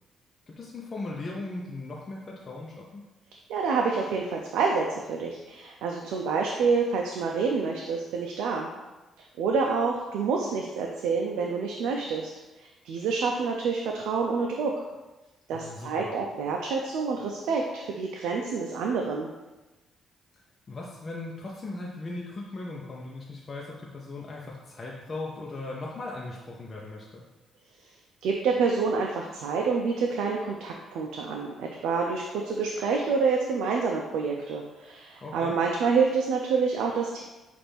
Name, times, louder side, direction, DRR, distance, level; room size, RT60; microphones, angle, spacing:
voice 1, 0.5-3.0 15.5-16.1 20.7-27.2 35.2-35.6, left 2 dB, 35° left, -3 dB, 0.6 m, -38 dB
voice 2, 3.5-8.7 9.4-12.3 12.6-14.8 15.5-19.3 28.2-37.2, right 5 dB, 85° right, 0 dB, 0.4 m, -27 dB
5.9 x 2.5 x 3.4 m, 1.1 s
cardioid pair, 90°, 0 cm